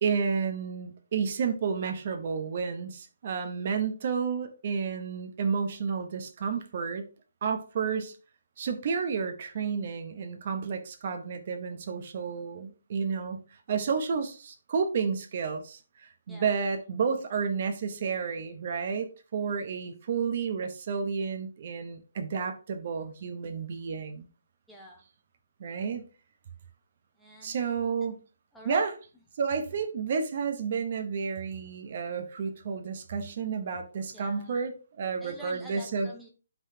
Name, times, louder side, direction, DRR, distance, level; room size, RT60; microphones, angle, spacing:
voice 1, 0.0-7.1 7.4-8.1 8.6-13.4 13.7-24.3 25.6-26.0 27.4-28.2 28.6-28.9 29.4-36.1, right 6 dB, 30° right, 0.8 m, -31 dB
voice 2, 16.3-16.6 24.7-25.0 27.2-27.6 28.5-28.8 34.1-34.5 35.2-36.3, left 1 dB, ahead, 0.9 m, -47 dB
11.5 x 3.9 x 2.8 m
hypercardioid pair, 180°, 0 cm